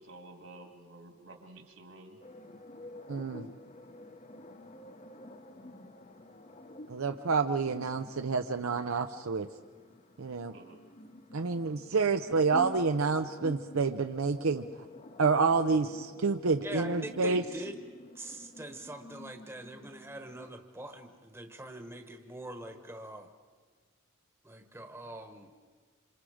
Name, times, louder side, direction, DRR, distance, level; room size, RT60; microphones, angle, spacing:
voice 1, 0.0-2.2 10.5-10.8, right 2 dB, 70° right, 4 dB, 2.9 m, -51 dB
sound 1, 2.2-20.5, left 1 dB, 30° left, 0.8 m, -48 dB
voice 2, 3.1-3.5 6.9-9.5 10.2-10.5 11.3-14.6 15.2-17.4, right 4 dB, 85° right, 7 dB, 0.7 m, -28 dB
voice 3, 16.6-17.8 18.1-23.3 24.4-25.5, right 1 dB, 10° right, 6 dB, 1.2 m, -43 dB
27.5 x 26.5 x 5.0 m, 1.5 s
head